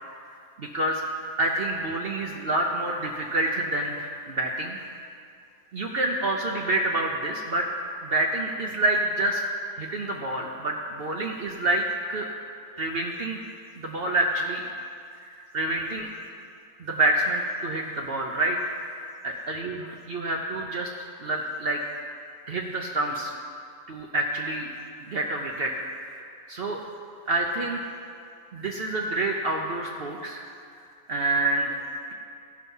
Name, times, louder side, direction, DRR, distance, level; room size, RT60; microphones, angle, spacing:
voice 1, 0.6-1.0 1.4-4.8 5.7-7.7 8.0-9.4 9.8-12.3 12.8-13.4 13.8-14.6 15.3-16.1 16.8-18.6 18.8-19.7 20.1-20.9 21.2-21.8 22.5-23.3 23.9-24.7 25.0-25.9 26.6-26.8 27.3-27.8 28.5-30.4 31.1-31.8, right 2 dB, 55° right, 0 dB, 0.8 m, -27 dB
14.0 x 5.6 x 5.5 m, 2.4 s
omnidirectional pair, 1.4 m